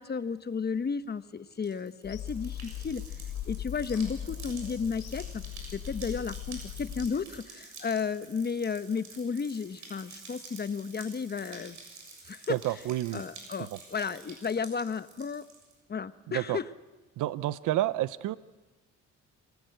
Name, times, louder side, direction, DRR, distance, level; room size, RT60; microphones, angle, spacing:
voice 1, 0.0-3.0 3.4-11.8 12.2-12.6 13.1-15.4 15.9-16.6, left 5 dB, 35° left, 12 dB, 1.1 m, -33 dB
sound 1, 1.5-15.7, right 4 dB, 70° right, 7.2 m, -49 dB
Bird vocalization bird call bird song / Telephone, 2.0-7.1, left 10 dB, 85° left, 3.6 m, -39 dB
voice 2, 12.5-13.2 13.6-13.8 16.3-16.6 17.2-18.4, right 15 dB, 85° right, 17 dB, 0.7 m, -30 dB
26.5 x 19.0 x 7.9 m, 1.2 s
cardioid pair, 90°, 30 cm